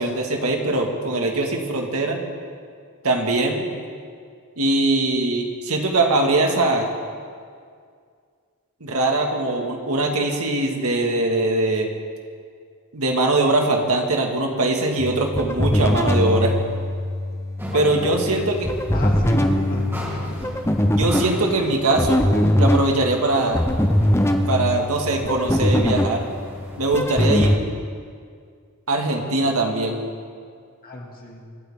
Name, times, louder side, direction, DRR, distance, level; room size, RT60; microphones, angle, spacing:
voice 1, 0.0-2.2 3.0-3.6 4.6-6.9 8.8-11.9 12.9-16.6 17.7-18.7 20.9-22.2 22.6-23.6 24.5-26.3 26.8-27.6 28.9-30.0, right 2 dB, 70° right, 1 dB, 2.0 m, -21 dB
sound 1, 15.0-27.6, left 1 dB, 10° left, 0.8 m, -22 dB
sound 2, 17.6-27.5, equal, 10° right, 3.5 m, -38 dB
voice 2, 17.7-18.1 18.3-18.4 18.9-19.9 30.8-31.4, left 1 dB, 40° left, -1 dB, 2.5 m, -30 dB
24.5 x 12.5 x 3.7 m, 2.1 s
head